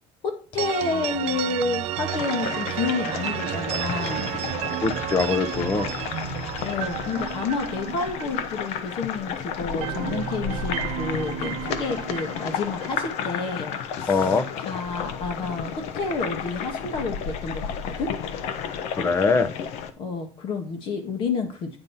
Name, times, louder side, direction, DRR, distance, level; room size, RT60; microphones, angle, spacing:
voice 1, 0.2-4.3 6.6-18.1 20.0-21.8, left 4 dB, 50° left, 5 dB, 1.6 m, -30 dB
sound 1, 0.6-9.3 9.6-13.7, right 12 dB, 65° right, 0.8 m, -32 dB
sound 2, 2.1-19.9, left 7 dB, 75° left, 1.1 m, -32 dB
voice 2, 4.8-5.9 14.1-14.5 19.0-19.5, left 4 dB, 25° left, 12 dB, 0.9 m, -22 dB
9.4 x 5.2 x 5.7 m, 0.38 s
cardioid pair, 145°, 11 cm